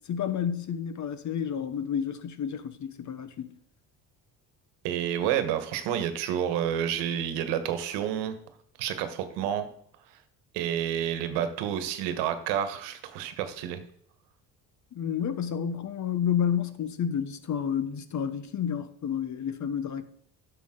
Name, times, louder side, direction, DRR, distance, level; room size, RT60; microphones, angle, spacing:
voice 1, 0.1-3.6 14.9-20.0, left 8 dB, 45° left, 1.1 m, -30 dB
voice 2, 4.8-8.4 8.8-9.7 10.5-13.8, right 9 dB, 80° right, 1.4 m, -29 dB
11.5 x 7.0 x 3.8 m
supercardioid pair, 75°, 40 cm